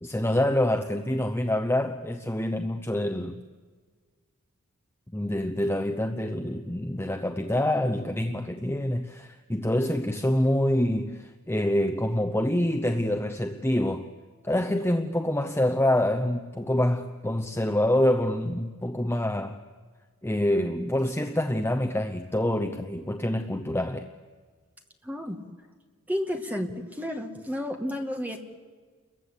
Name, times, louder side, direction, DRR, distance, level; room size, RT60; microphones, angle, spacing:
voice 1, 0.0-3.4 5.1-14.1 14.4-19.6 20.2-24.1, left 1 dB, 10° left, 5 dB, 0.8 m, -26 dB
voice 2, 25.0-25.4 26.1-28.4, left 1 dB, 5° right, 3 dB, 2.2 m, -31 dB
29.5 x 22.5 x 8.4 m, 1.5 s
head